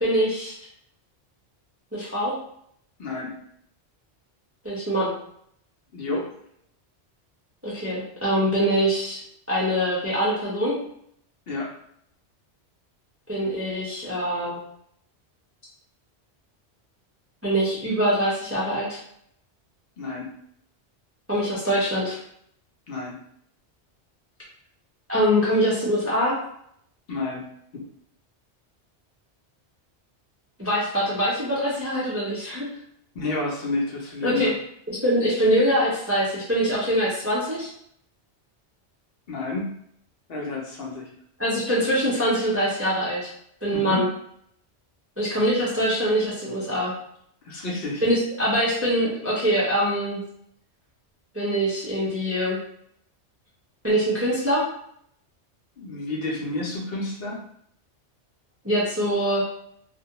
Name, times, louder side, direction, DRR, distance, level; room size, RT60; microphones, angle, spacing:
voice 1, 0.0-0.5 1.9-2.3 4.6-5.1 7.6-9.2 9.5-10.7 13.3-14.6 17.4-19.0 21.3-22.2 25.1-26.4 30.6-32.7 34.2-34.5 34.9-37.7 41.4-43.3 43.6-44.1 45.2-46.9 48.0-50.2 51.3-52.6 53.8-54.6 58.6-59.4, equal, 20° right, -7 dB, 0.4 m, -23 dB
voice 2, 3.0-3.4 5.9-6.3 11.5-11.7 20.0-20.3 22.9-23.2 27.1-27.5 27.7-27.8 33.1-34.5 39.3-39.7 40.3-41.1 43.7-44.1 47.4-48.0 55.8-57.4, left 2 dB, 60° left, -3 dB, 0.8 m, -30 dB
2.3 x 2.1 x 2.8 m, 0.68 s
omnidirectional pair, 1.2 m